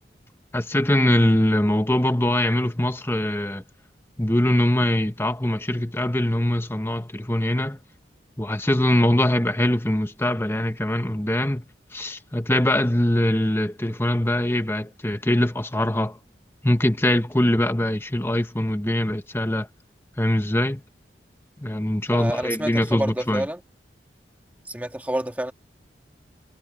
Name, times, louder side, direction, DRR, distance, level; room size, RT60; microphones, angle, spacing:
voice 1, 0.5-3.6 4.2-7.8 8.4-11.6 11.9-16.2 16.6-19.7 20.2-20.8 21.6-23.4, left 1 dB, 15° left, 1.1 m, -22 dB
voice 2, 22.1-23.6 24.7-25.5, right 1 dB, 10° right, 1.7 m, -28 dB
head